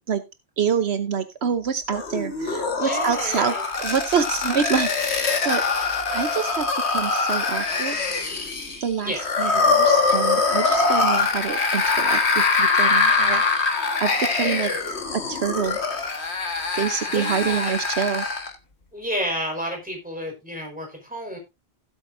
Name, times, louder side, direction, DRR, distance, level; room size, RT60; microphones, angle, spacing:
voice 1, 0.6-5.6 6.1-6.7 6.9-8.0 8.8-12.2 12.6-13.4 14.0-14.7 15.1-15.8 16.7-18.3, right 7 dB, 75° right, 11 dB, 1.1 m, -26 dB
sound 1, 1.9-18.6, left 4 dB, 90° left, 2.0 m, -23 dB
voice 2, 2.8-3.6 9.0-9.3 14.4-14.7 17.1-17.7 18.9-21.4, equal, 10° right, 1 dB, 4.9 m, -31 dB
17.0 x 7.9 x 2.6 m, 0.24 s
omnidirectional pair, 1.1 m